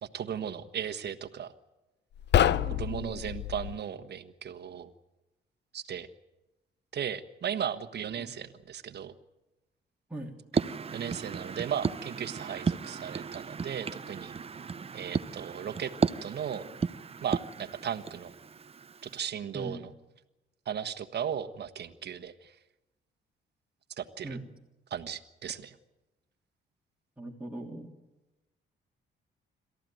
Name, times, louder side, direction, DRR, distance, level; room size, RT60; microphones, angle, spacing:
voice 1, 0.0-1.5 2.7-4.9 5.7-6.1 6.9-9.1 10.9-14.3 14.9-15.9 16.2-16.7 17.2-18.3 19.0-19.9 20.6-22.5 24.0-24.4 24.9-25.7, right 8 dB, 55° right, 9 dB, 1.4 m, -36 dB
sound 1, 2.1-3.8, left 10 dB, 60° left, 0.7 m, -27 dB
voice 2, 2.5-3.3 8.2-8.3 10.1-10.3 19.5-19.9 24.2-24.5 27.2-27.9, right 1 dB, 5° right, -2 dB, 3.3 m, -41 dB
sound 2, 10.5-19.2, right 5 dB, 30° right, 0.7 m, -34 dB
27.0 x 14.0 x 9.3 m, 1.1 s
cardioid pair, 90°, 20 cm